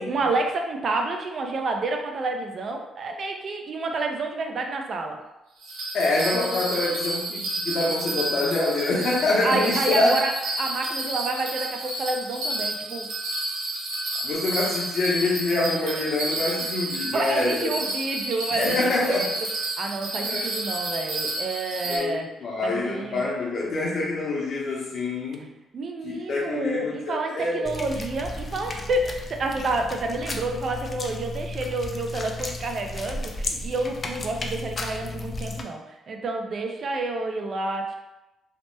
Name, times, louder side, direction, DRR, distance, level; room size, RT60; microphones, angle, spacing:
voice 1, 0.0-5.2 9.4-10.3 10.6-13.1 17.1-19.3 19.8-22.3 22.6-23.3 25.7-35.8 36.1-38.0, right 2 dB, 50° right, 3 dB, 0.4 m, -29 dB
Bell, 5.6-22.0, right 1 dB, 90° right, 0.7 m, -30 dB
voice 2, 5.9-10.2 14.2-17.7 18.5-19.3 20.1-20.4 21.9-25.4 26.0-27.7, left 2 dB, 55° left, -4 dB, 0.9 m, -26 dB
sound 1, 27.7-35.6, left 2 dB, 35° left, 0.4 m, -34 dB
2.9 x 2.0 x 3.2 m, 0.96 s
cardioid pair, 90°, 0 cm